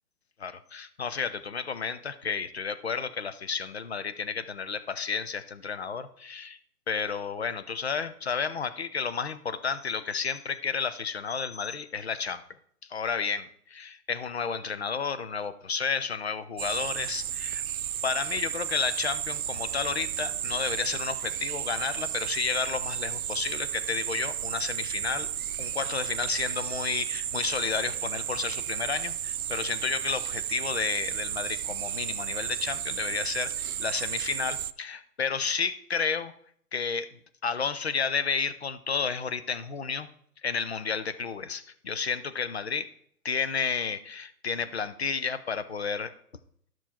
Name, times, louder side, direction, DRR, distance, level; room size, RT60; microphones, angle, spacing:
voice 1, 0.4-6.6 6.9-12.4 12.8-17.6 18.0-25.3 25.6-36.3 36.7-37.1 37.4-40.1 40.4-42.9 43.2-46.1, left 5 dB, 45° left, 13 dB, 0.6 m, -31 dB
sound 1, 16.6-34.7, right 10 dB, 65° right, 0.5 m, -33 dB
12.5 x 6.1 x 4.3 m, 0.66 s
hypercardioid pair, 175°, 47 cm